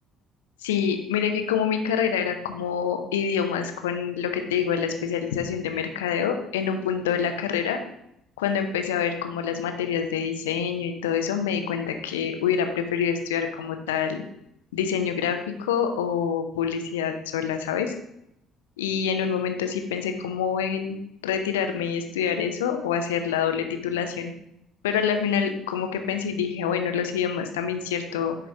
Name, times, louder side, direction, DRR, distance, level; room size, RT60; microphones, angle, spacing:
voice 1, 0.6-7.8 8.4-14.2 14.7-17.9 18.8-21.0 21.2-24.3 24.8-28.4, left 7 dB, 70° left, 6 dB, 0.7 m, -26 dB
10.0 x 4.6 x 3.5 m, 0.78 s
figure-of-eight pair, 50°, 0 cm